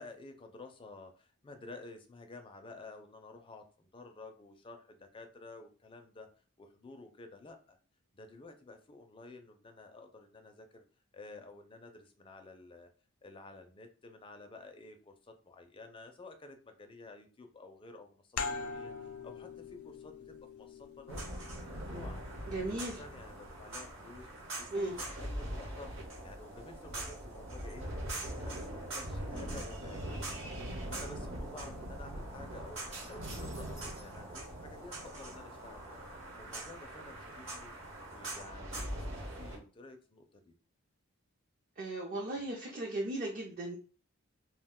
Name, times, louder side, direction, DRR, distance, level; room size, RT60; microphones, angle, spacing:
voice 1, 0.0-6.3 6.6-7.8 8.1-10.8 11.1-12.9 13.2-22.2 23.0-24.3 24.6-27.9 28.2-36.0 36.4-37.7 38.1-40.6, left 3 dB, 25° left, 5 dB, 0.4 m, -52 dB
sound 1, 18.4-23.6, left 4 dB, 90° left, 0.5 m, -44 dB
sound 2, 21.1-39.6, right 1 dB, 60° right, 1.0 m, -42 dB
voice 2, 22.5-23.0 24.7-25.0 41.8-43.8, right 2 dB, 40° right, -1 dB, 0.5 m, -36 dB
2.3 x 2.2 x 3.6 m, 0.38 s
head